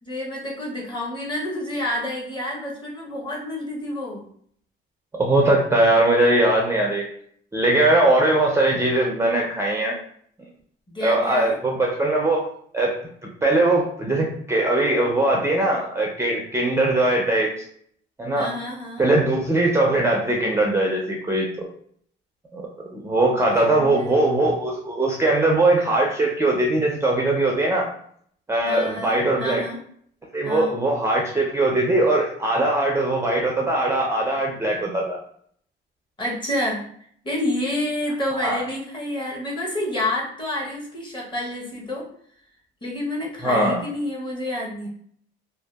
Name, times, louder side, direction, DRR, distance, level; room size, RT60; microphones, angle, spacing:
voice 1, 0.0-4.2 10.9-11.5 18.3-19.1 23.5-24.1 28.7-29.8 30.4-30.7 36.2-36.9 37.2-42.1 42.8-44.9, left 1 dB, 25° left, -3 dB, 0.8 m, -29 dB
voice 2, 5.2-7.0 7.5-9.9 11.0-12.5 12.7-13.0 13.4-17.6 18.2-18.5 19.0-21.7 22.5-27.9 28.5-29.6 30.3-35.2 38.4-38.6 43.4-43.8, right 2 dB, 15° right, -1 dB, 0.4 m, -20 dB
2.6 x 2.2 x 2.2 m, 0.62 s
cardioid pair, 105°, 20 cm